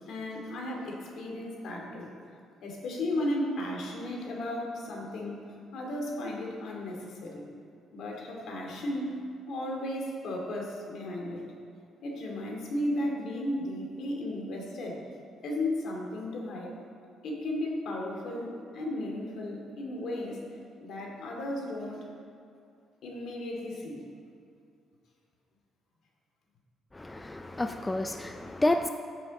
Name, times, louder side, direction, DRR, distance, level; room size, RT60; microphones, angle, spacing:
voice 1, 0.1-2.1 2.6-5.4 5.7-7.5 7.9-11.4 12.0-15.0 15.4-16.8 17.2-20.4 20.8-22.1 23.0-24.0, left 1 dB, 65° left, -1 dB, 2.3 m, -34 dB
voice 2, 26.9-28.9, left 1 dB, 15° left, 7 dB, 0.4 m, -29 dB
15.0 x 7.6 x 4.1 m, 2.4 s
cardioid pair, 130°, 0 cm